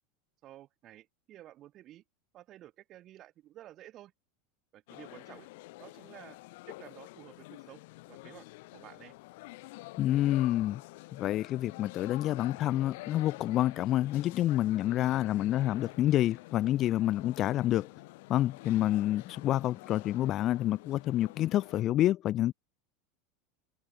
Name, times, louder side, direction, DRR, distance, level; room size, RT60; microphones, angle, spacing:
voice 1, 0.4-2.0 2.3-4.1 4.7-5.5 5.8-6.4 6.7-8.5 8.7-9.1, right 13 dB, 40° right, 4.3 m, -52 dB
sound 1, 4.9-21.8, left 22 dB, 55° left, 1.0 m, -48 dB
voice 2, 10.0-10.8 11.1-17.9 18.3-22.5, left 13 dB, 40° left, 0.5 m, -28 dB
figure-of-eight pair, 80°, 0 cm